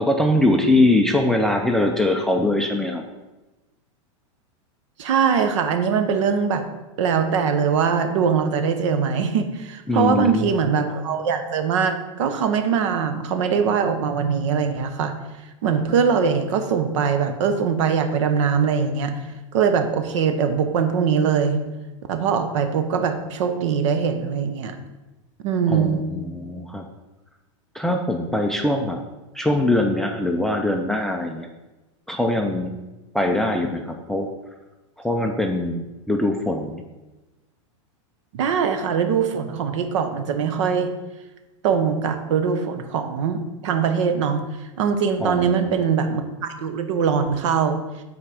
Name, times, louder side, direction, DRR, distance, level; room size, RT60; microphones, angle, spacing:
voice 1, 0.0-3.0 9.9-10.5 25.7-26.9 27.7-29.0 29.3-31.5 32.1-32.8 33.1-34.3 35.0-36.8 45.2-45.8, left 1 dB, ahead, 3 dB, 0.4 m, -22 dB
voice 2, 5.0-6.6 7.0-15.1 15.6-19.1 19.5-21.6 22.1-24.8 25.4-26.0 38.3-40.9 41.6-44.4 44.8-47.8, right 6 dB, 70° right, 7 dB, 1.0 m, -22 dB
8.6 x 4.3 x 4.9 m, 1.1 s
supercardioid pair, 140°, 16 cm